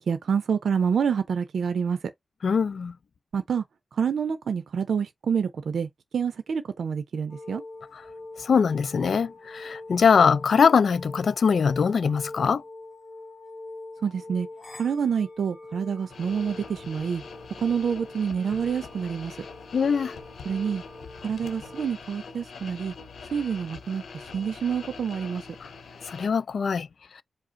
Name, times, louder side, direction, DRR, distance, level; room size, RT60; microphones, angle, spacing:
voice 1, 0.0-2.1 3.3-3.6 3.9-7.6 14.0-14.5 14.8-17.2 17.6-19.4 20.4-20.8 21.2-22.9 23.3-25.4, right 7 dB, 80° right, 0.5 m, -27 dB
voice 2, 2.4-2.9 7.9-8.0 8.4-12.6 19.7-20.2 25.6-25.7 26.1-26.9, left 6 dB, 60° left, 0.4 m, -22 dB
sound 1, 7.3-21.8, left 2 dB, 35° left, 1.6 m, -44 dB
sound 2, 16.1-26.3, left 5 dB, 85° left, 0.8 m, -44 dB
5.0 x 2.0 x 3.9 m
wide cardioid pair, 155°, 0 cm